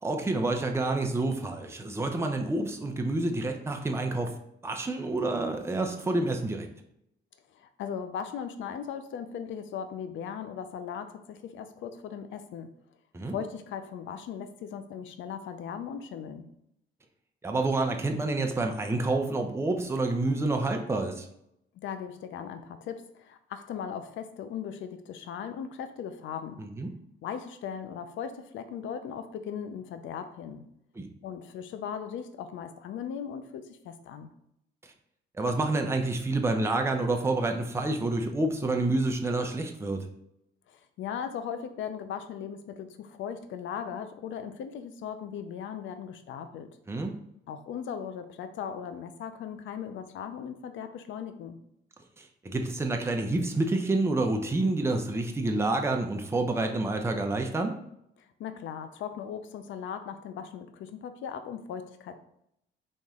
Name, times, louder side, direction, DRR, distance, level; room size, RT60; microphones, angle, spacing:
voice 1, 0.0-4.3 4.6-6.7 13.1-13.4 17.4-21.3 26.6-26.9 31.0-31.1 34.8-34.9 35.4-40.0 46.9-47.1 52.2-57.8, right 2 dB, 15° right, 3 dB, 0.6 m, -28 dB
voice 2, 7.5-12.7 13.2-16.5 21.8-26.6 27.2-30.7 31.2-34.3 40.7-46.7 47.5-51.6 58.2-62.2, left 7 dB, 75° left, 9 dB, 0.5 m, -38 dB
4.2 x 3.0 x 3.6 m, 0.76 s
cardioid pair, 90°, 20 cm